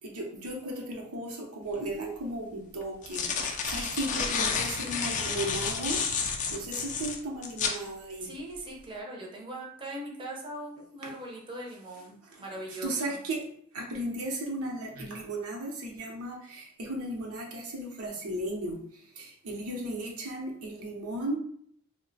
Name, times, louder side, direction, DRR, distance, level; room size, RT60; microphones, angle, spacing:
voice 1, 0.0-6.0 6.5-8.3 11.0-11.1 12.3-13.4 13.7-21.4, right 1 dB, 85° right, 1 dB, 0.7 m, -35 dB
sound 1, 1.7-1.8 2.8-7.8, left 5 dB, 35° left, 0.3 m, -31 dB
voice 2, 8.2-13.2, right 1 dB, 25° right, -2 dB, 0.5 m, -40 dB
2.4 x 2.1 x 3.8 m, 0.65 s
head